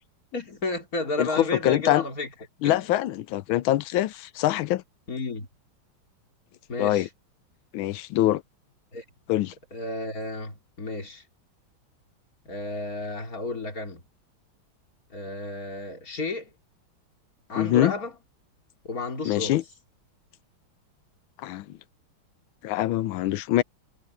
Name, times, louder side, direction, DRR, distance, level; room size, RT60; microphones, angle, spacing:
voice 1, 0.3-2.3 2.6-2.9 5.1-5.5 6.7-7.1 8.9-9.0 9.7-11.2 12.5-14.0 15.1-16.5 17.5-18.1 18.8-19.6, left 2 dB, 40° left, 3.7 m, -32 dB
voice 2, 1.2-2.0 2.6-4.8 6.8-7.1 7.7-8.4 9.3-9.5 17.6-17.9 19.2-19.6 21.4-21.8 22.6-23.6, left 14 dB, 75° left, 1.4 m, -24 dB
omnidirectional pair, 2.3 m